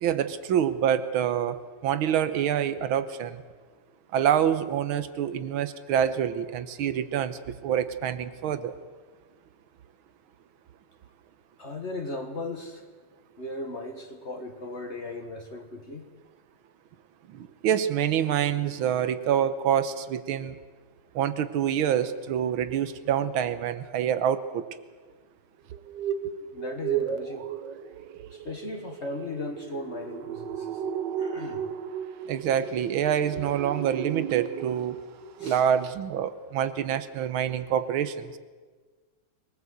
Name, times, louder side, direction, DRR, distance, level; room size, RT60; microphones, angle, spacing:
voice 1, 0.0-3.4 4.1-8.7 17.3-20.6 21.2-24.6 32.3-35.0 35.4-38.4, right 9 dB, 80° right, 12 dB, 1.8 m, -26 dB
voice 2, 11.6-12.8 13.4-16.1 26.5-27.5 28.3-30.8 31.2-31.6 35.4-35.6, left 2 dB, 35° left, 5 dB, 1.7 m, -37 dB
sound 1, 25.7-35.0 35.3-35.6 35.8-35.9, right 8 dB, 65° right, 1.4 m, -34 dB
22.0 x 19.5 x 8.0 m, 1.4 s
omnidirectional pair, 2.2 m